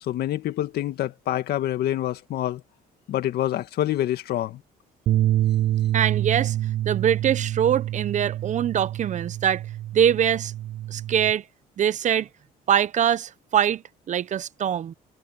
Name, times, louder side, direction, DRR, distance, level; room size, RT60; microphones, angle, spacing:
voice 1, 0.0-2.6 3.1-4.6, left 13 dB, 70° left, 2.0 m, -26 dB
sound 1, 5.1-11.3, right 13 dB, 60° right, 0.5 m, -26 dB
voice 2, 5.9-6.6 6.8-9.6 9.9-10.5 10.9-11.4 11.8-12.3 12.7-14.9, right 9 dB, 45° right, 0.9 m, -23 dB
cardioid pair, 110°, 17 cm